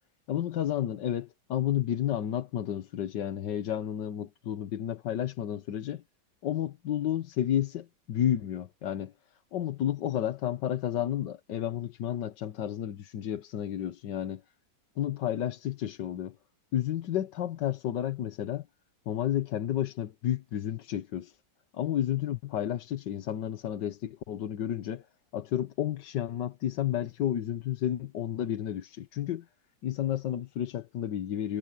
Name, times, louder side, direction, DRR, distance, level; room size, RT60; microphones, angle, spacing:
voice 1, 0.3-6.0 6.4-9.1 9.5-14.4 15.0-16.3 16.7-18.7 19.1-21.4 21.7-25.0 25.3-29.5 29.8-31.6, left 11 dB, 70° left, 1.6 m, -31 dB
omnidirectional pair, 2.0 m